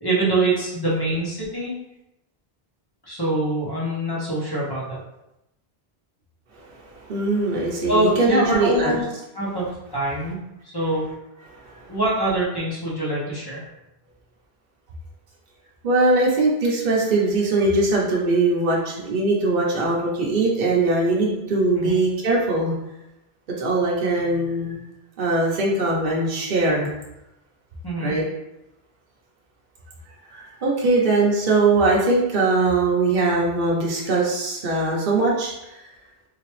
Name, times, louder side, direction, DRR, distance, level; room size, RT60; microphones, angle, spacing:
voice 1, 0.0-1.7 3.0-5.0 7.9-9.0 9.3-9.7 9.9-10.4 10.6-11.0 11.9-13.6 21.8-22.0 27.8-28.1, right 1 dB, 25° left, -6 dB, 1.1 m, -24 dB
voice 2, 7.1-8.9 15.8-22.7 23.6-24.8 25.2-26.9 28.0-28.2 30.3-35.5, right 2 dB, 55° right, -4 dB, 0.8 m, -21 dB
3.3 x 2.9 x 3.0 m, 0.90 s
omnidirectional pair, 1.0 m